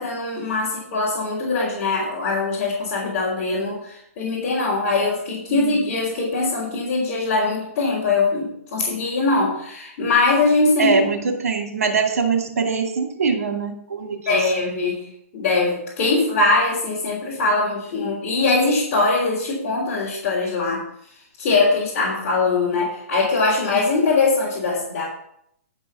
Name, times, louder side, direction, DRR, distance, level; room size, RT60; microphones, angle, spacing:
voice 1, 0.0-11.0 14.3-15.1 15.3-20.8 21.4-25.0, left 3 dB, 40° left, -6 dB, 3.5 m, -21 dB
voice 2, 10.8-14.7, right 5 dB, 85° right, 3 dB, 2.5 m, -23 dB
11.0 x 5.3 x 7.0 m, 0.72 s
hypercardioid pair, 150°, 8 cm